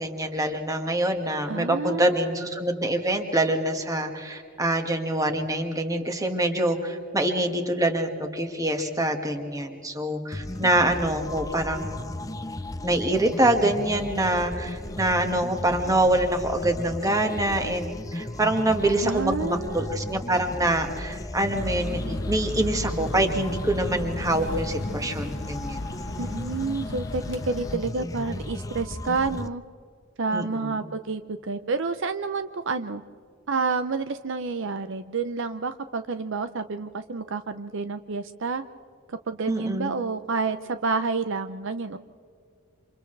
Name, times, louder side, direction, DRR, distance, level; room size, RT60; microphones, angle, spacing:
voice 1, 0.0-12.3 12.8-25.8 30.3-30.8 39.5-39.9, right 1 dB, 15° right, 4 dB, 1.8 m, -25 dB
voice 2, 1.5-2.4 19.0-20.0 26.2-29.6 30.2-33.0 33.5-38.6 39.1-42.0, right 4 dB, 60° right, 10 dB, 0.6 m, -29 dB
sound 1, 10.3-29.5, left 1 dB, 15° left, 0.5 m, -35 dB
sound 2, 21.5-27.8, left 1 dB, 55° left, 1.1 m, -35 dB
28.5 x 27.0 x 3.3 m, 2.3 s
head